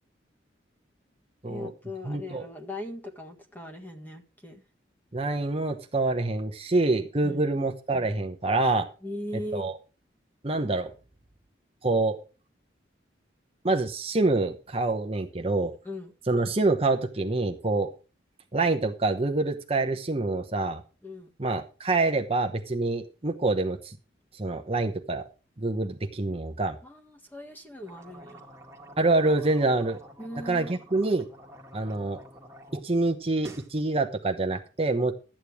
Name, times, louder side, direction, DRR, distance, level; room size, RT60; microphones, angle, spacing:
voice 1, 1.5-4.6 7.2-7.5 9.0-9.7 15.8-16.1 21.0-21.3 26.8-28.5 30.2-30.7, left 1 dB, 10° left, 1.6 m, -39 dB
voice 2, 2.1-2.4 5.1-8.9 9.5-9.7 10.4-10.9 11.8-12.2 13.6-15.7 16.3-17.9 18.5-20.8 21.4-24.0 24.3-25.2 25.6-26.8 29.0-30.0 30.5-31.3 31.7-32.2 32.8-35.1, right 2 dB, 30° right, 0.9 m, -26 dB
sound 1, 27.8-32.9 33.2-33.7, right 1 dB, 15° right, 1.8 m, -48 dB
13.0 x 9.0 x 4.8 m
head